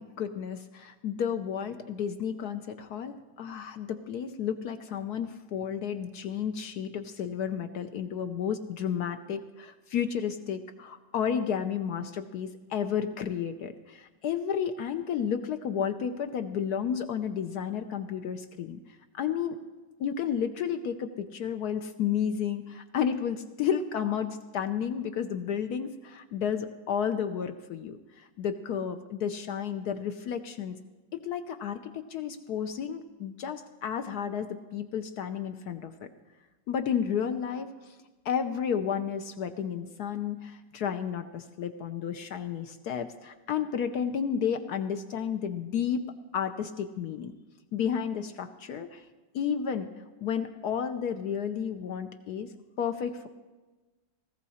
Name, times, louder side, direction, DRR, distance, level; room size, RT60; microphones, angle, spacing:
voice 1, 0.0-18.8 19.1-19.6 20.0-30.8 31.1-36.1 36.7-37.9 38.2-46.0 46.3-47.3 47.7-49.0 49.3-49.9 50.2-52.5 52.8-53.3, left 8 dB, 70° left, 7 dB, 1.1 m, -32 dB
18.0 x 14.5 x 4.2 m, 1.2 s
omnidirectional pair, 1.9 m